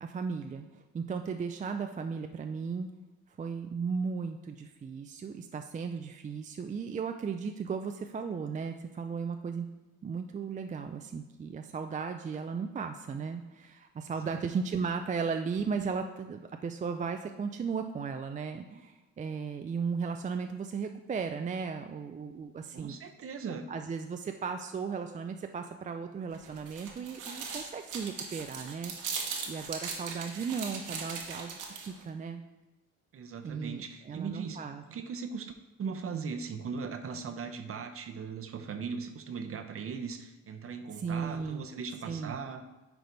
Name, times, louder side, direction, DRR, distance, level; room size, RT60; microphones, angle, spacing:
voice 1, 0.0-2.9 3.4-9.7 10.0-22.9 23.7-32.4 33.4-34.8 40.9-41.6 42.0-42.4, right 5 dB, 25° right, 6 dB, 0.4 m, -36 dB
voice 2, 22.7-23.7 33.1-42.6, right 5 dB, 50° right, 7 dB, 0.7 m, -39 dB
sound 1, 26.3-32.0, right 5 dB, 80° right, 1.2 m, -39 dB
10.5 x 3.5 x 3.9 m, 1.0 s
cardioid pair, 90°, 30 cm